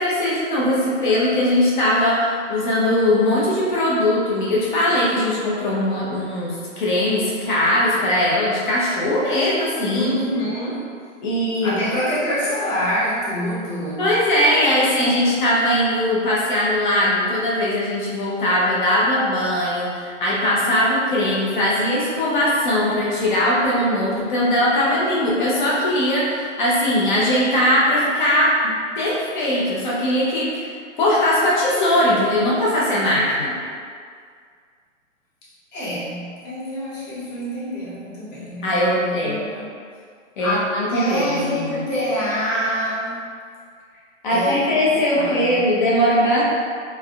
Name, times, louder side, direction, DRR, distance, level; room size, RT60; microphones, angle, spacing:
voice 1, 0.0-10.1 11.2-11.8 14.0-33.6 38.4-39.4 40.4-41.8 44.2-46.4, left 1 dB, 40° left, -6 dB, 0.7 m, -20 dB
voice 2, 9.9-10.9 11.6-14.1 35.7-39.7 40.4-43.2 44.3-44.8 45.1-45.6, equal, 75° left, -8 dB, 1.3 m, -26 dB
3.4 x 2.1 x 2.3 m, 2.1 s
hypercardioid pair, 155°, 39 cm